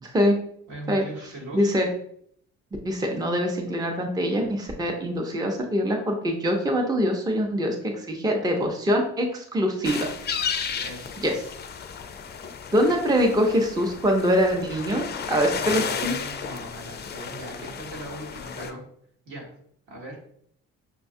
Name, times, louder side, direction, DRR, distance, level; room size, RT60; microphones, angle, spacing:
voice 1, 0.0-0.3 0.9-1.0 1.5-1.9 2.8-10.1 11.2-11.4 12.7-16.2, equal, 15° right, 2 dB, 0.6 m, -24 dB
voice 2, 0.7-1.7 10.8-11.2 12.4-12.5 15.7-18.8 19.3-19.5 19.9-20.2, right 1 dB, 75° right, -3 dB, 1.5 m, -39 dB
sound 1, 9.8-18.7, left 6 dB, 35° left, 0.4 m, -33 dB
5.7 x 2.2 x 2.6 m, 0.66 s
cardioid pair, 90°, 30 cm